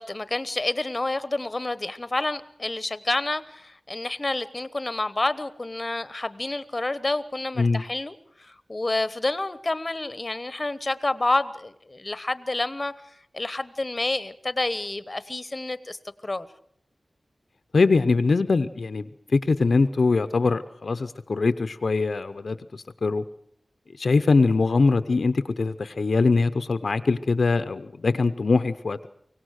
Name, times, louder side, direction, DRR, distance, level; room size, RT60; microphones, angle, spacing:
voice 1, 0.0-12.9 13.3-16.0 16.2-16.5, left 2 dB, 30° left, 15 dB, 1.0 m, -29 dB
voice 2, 17.7-23.2 24.0-29.1, left 3 dB, 65° left, 11 dB, 0.7 m, -22 dB
24.5 x 17.5 x 6.5 m, 0.70 s
wide cardioid pair, 80°, 0 cm